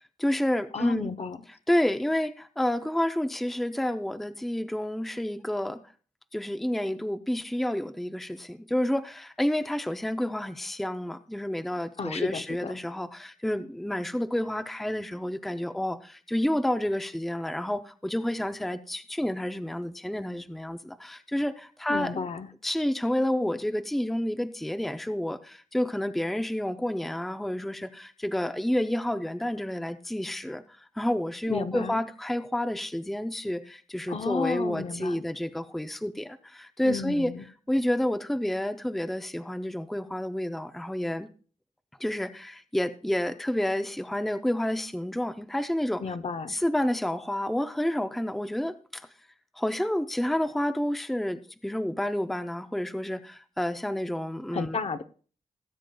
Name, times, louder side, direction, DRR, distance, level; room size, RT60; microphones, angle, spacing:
voice 1, 0.2-1.1 1.7-5.8 6.3-22.3 22.6-30.6 31.0-37.3 37.7-41.3 42.0-46.0 46.5-49.1 49.6-54.8, left 1 dB, ahead, 9 dB, 0.5 m, -29 dB
voice 2, 0.7-1.4 12.0-12.8 21.9-22.5 31.5-32.0 34.1-35.2 36.8-37.4 46.0-46.5 54.5-55.0, left 5 dB, 50° left, 9 dB, 0.7 m, -32 dB
18.0 x 9.0 x 2.3 m, 0.40 s
wide cardioid pair, 140°, 14 cm